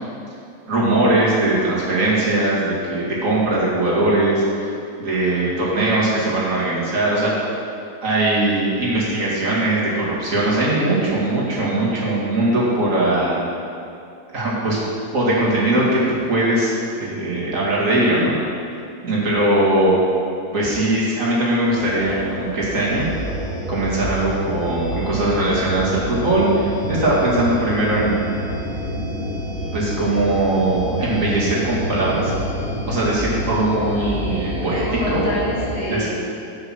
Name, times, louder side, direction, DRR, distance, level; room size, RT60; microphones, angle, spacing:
voice 1, 0.7-4.7 5.0-7.3 8.0-13.4 14.3-14.8 15.1-18.4 19.0-19.9 20.5-23.1 23.7-28.2 29.7-32.3 32.9-35.2 35.9-36.1, right 1 dB, 55° right, -6 dB, 2.6 m, -20 dB
voice 2, 11.3-11.7 26.8-27.2 33.1-33.9 34.8-36.4, left 1 dB, 40° left, -7 dB, 2.6 m, -29 dB
sound 1, 21.7-35.8, equal, 70° left, 3.3 m, -28 dB
8.1 x 8.0 x 6.0 m, 2.5 s
omnidirectional pair, 1.7 m